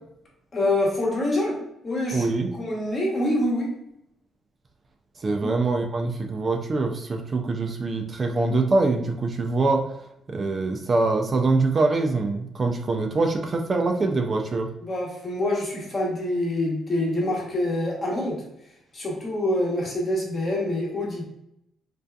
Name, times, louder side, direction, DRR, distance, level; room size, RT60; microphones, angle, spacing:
voice 1, 0.5-1.6 1.8-2.3 2.5-3.7 5.4-5.5 14.8-18.4 18.9-21.2, left 1 dB, 40° left, -2 dB, 0.9 m, -26 dB
voice 2, 2.1-2.5 5.2-9.8 10.3-14.7, right 3 dB, 40° right, 3 dB, 0.3 m, -24 dB
2.6 x 2.3 x 2.2 m, 0.82 s
cardioid pair, 90°, 0 cm